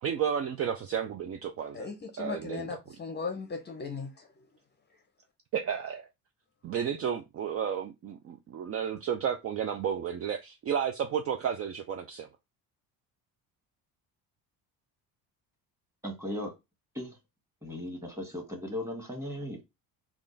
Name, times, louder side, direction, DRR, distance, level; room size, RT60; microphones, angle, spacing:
voice 1, 0.0-1.9 2.2-2.7 5.5-6.1 6.6-12.3, right 8 dB, 40° right, 0.4 m, -32 dB
voice 2, 1.7-4.5, left 5 dB, 30° left, 0.6 m, -38 dB
voice 3, 16.0-16.5 16.9-17.2 17.6-19.6, left 1 dB, 10° right, 1.5 m, -37 dB
3.5 x 2.4 x 3.8 m
cardioid pair, 105°, 37 cm